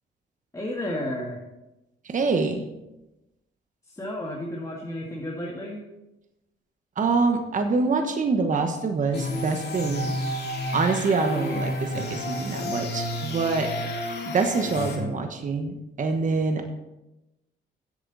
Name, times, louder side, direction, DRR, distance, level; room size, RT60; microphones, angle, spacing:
voice 1, 0.5-1.4 3.9-5.8, left 1 dB, 15° left, -3 dB, 1.9 m, -32 dB
voice 2, 2.0-2.6 7.0-10.2 10.7-13.7 14.3-16.7, right 4 dB, 40° right, 5 dB, 1.2 m, -25 dB
sound 1, 9.1-15.0, left 1 dB, 55° left, 2.5 m, -31 dB
13.0 x 8.1 x 4.1 m, 0.96 s
cardioid pair, 90°, 20 cm